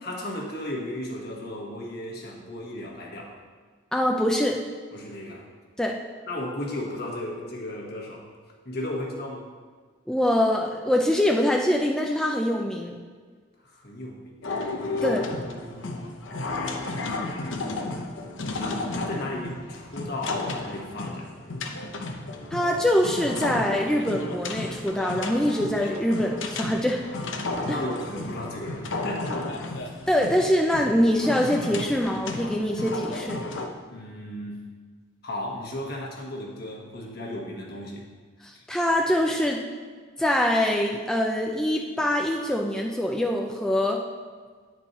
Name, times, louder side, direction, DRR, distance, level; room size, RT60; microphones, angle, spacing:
voice 1, 0.0-3.4 4.9-5.4 6.2-8.3 8.6-9.5 13.6-16.4 18.5-21.3 27.5-30.0 33.9-34.6 35.2-38.0 38.5-38.6, left 1 dB, 55° left, -2 dB, 1.4 m, -35 dB
voice 2, 3.9-4.6 5.8-6.0 10.1-13.0 15.0-15.2 22.5-27.0 27.7-27.8 30.1-33.4 38.4-39.6 40.2-44.0, left 1 dB, 5° left, -1 dB, 0.4 m, -24 dB
sound 1, 14.4-33.7, left 2 dB, 80° left, 0.7 m, -33 dB
9.5 x 4.6 x 4.1 m, 1.6 s
head